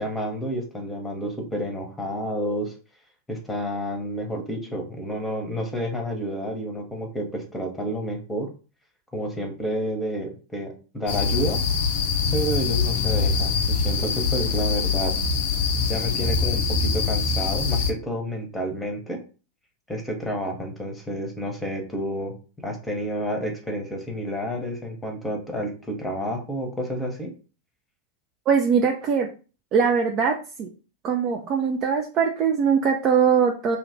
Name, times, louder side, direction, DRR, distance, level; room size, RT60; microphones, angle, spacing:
voice 1, 0.0-2.7 3.3-8.5 9.1-11.6 12.3-15.1 15.9-19.2 19.9-22.3 22.6-27.3, equal, 10° left, 3 dB, 1.0 m, -30 dB
sound 1, 11.1-17.9, left 5 dB, 50° left, 0.5 m, -24 dB
voice 2, 28.5-29.3 29.7-30.7 31.0-33.8, right 6 dB, 35° right, 2 dB, 0.5 m, -21 dB
2.9 x 2.5 x 4.2 m, 0.36 s
figure-of-eight pair, 90°, 0 cm